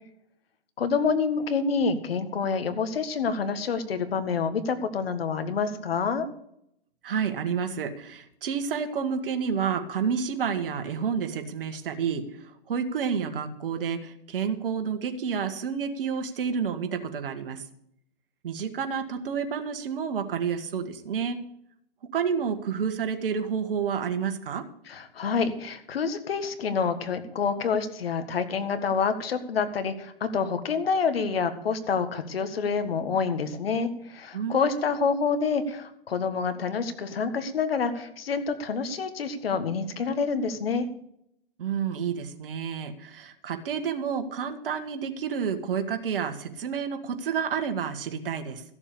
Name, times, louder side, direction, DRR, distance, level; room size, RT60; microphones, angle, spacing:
voice 1, 0.8-6.3 24.9-40.9, left 5 dB, 70° left, 9 dB, 1.7 m, -27 dB
voice 2, 7.0-17.6 18.4-21.4 22.1-24.7 34.3-35.0 41.6-48.6, right 6 dB, 60° right, 7 dB, 1.8 m, -30 dB
14.5 x 7.1 x 6.9 m, 0.73 s
hypercardioid pair, 130°, 30 cm